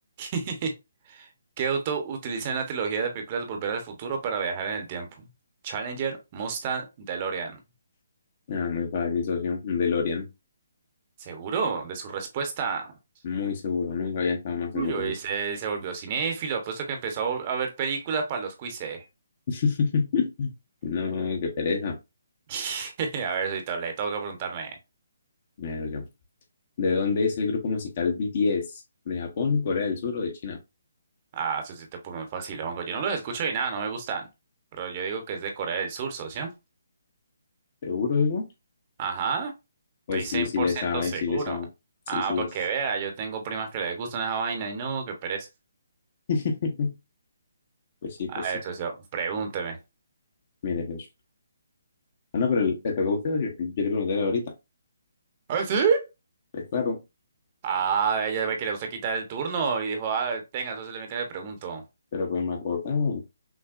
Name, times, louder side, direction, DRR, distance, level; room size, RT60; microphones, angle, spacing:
voice 1, 0.2-0.7 1.1-1.3 1.6-5.3 5.6-7.6 11.2-12.9 14.7-19.0 22.5-24.8 31.3-34.3 34.7-36.5 39.0-39.5 40.1-41.6 42.1-45.5 48.3-49.8 55.5-56.1 57.6-61.8, right 6 dB, 35° right, 1.0 m, -30 dB
voice 2, 8.5-10.3 13.2-15.1 19.5-20.5 20.8-21.9 25.6-26.1 26.8-30.6 37.8-38.5 40.1-41.7 42.1-42.5 46.3-46.9 48.0-48.5 50.6-51.1 52.3-54.4 56.5-57.0 62.1-63.2, left 5 dB, 45° left, 1.1 m, -27 dB
6.0 x 2.2 x 2.5 m
hypercardioid pair, 150°, 0 cm